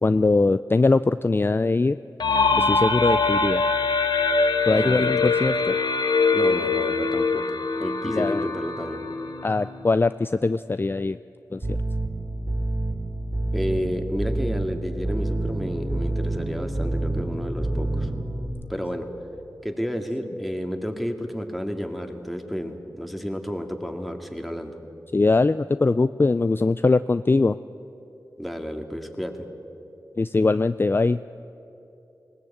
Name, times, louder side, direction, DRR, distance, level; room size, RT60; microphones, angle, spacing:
voice 1, 0.0-2.0 2.6-3.6 4.7-5.8 8.0-8.4 9.4-11.2 11.5-11.8 25.1-27.6 30.2-31.2, left 3 dB, 30° left, 13 dB, 0.4 m, -21 dB
sound 1, 2.2-9.8, left 4 dB, 85° left, 1.3 m, -23 dB
voice 2, 4.7-5.4 6.3-7.4 7.8-9.0 13.5-18.1 18.7-19.1 19.6-24.7 28.4-29.3, equal, ahead, 4 dB, 2.3 m, -31 dB
sound 2, 11.6-18.5, right 2 dB, 35° right, 4.1 m, -28 dB
20.0 x 18.5 x 8.7 m, 2.8 s
cardioid pair, 50°, 7 cm